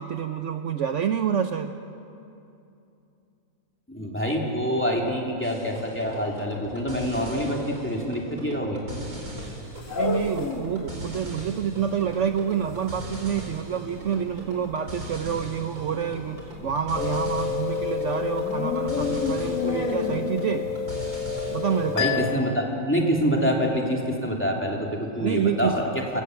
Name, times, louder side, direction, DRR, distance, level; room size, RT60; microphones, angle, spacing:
voice 1, 0.0-1.7 10.0-20.7 21.5-22.3 23.6-23.7 25.2-25.8, right 8 dB, 60° right, 7 dB, 1.1 m, -28 dB
voice 2, 3.9-8.8 21.9-26.2, equal, 10° left, -1 dB, 3.1 m, -26 dB
sound 1, 5.4-21.9, right 1 dB, 85° right, 4.9 m, -39 dB
sound 2, 9.4-11.0 11.3-11.4 11.6-13.8 14.1-14.4 14.7-15.2 15.5-15.6 16.1-16.2 16.6-17.9 18.2-20.2, left 3 dB, 60° left, 2.0 m, -31 dB
sound 3, 16.9-22.4, left 7 dB, 90° left, 1.5 m, -29 dB
29.5 x 16.5 x 7.9 m, 2.7 s
omnidirectional pair, 1.5 m